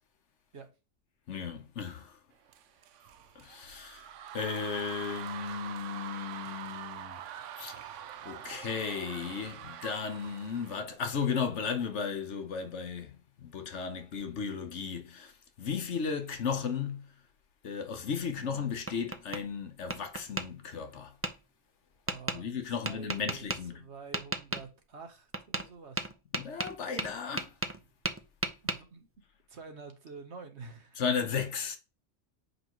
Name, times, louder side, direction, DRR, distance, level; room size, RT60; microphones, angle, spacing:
voice 1, 1.3-2.2 3.3-4.1 4.3-7.2 7.6-7.9 8.2-15.3 15.6-17.0 17.6-21.1 22.3-23.8 26.3-27.5 31.0-31.8, left 6 dB, 70° left, 1.3 m, -35 dB
sound 1, 2.5-10.8, right 10 dB, 90° right, 0.9 m, -44 dB
Tap, 18.4-19.4 19.9-20.5 21.2-21.3 22.1-22.4 22.8-23.6 24.1-24.6 25.3-25.7 26.0-27.8 28.0-28.8, right 2 dB, 20° right, 0.4 m, -34 dB
voice 2, 22.1-23.5 23.7-26.1 28.6-29.1 29.5-31.0, right 4 dB, 65° right, 1.5 m, -48 dB
7.7 x 5.4 x 3.1 m
omnidirectional pair, 1.2 m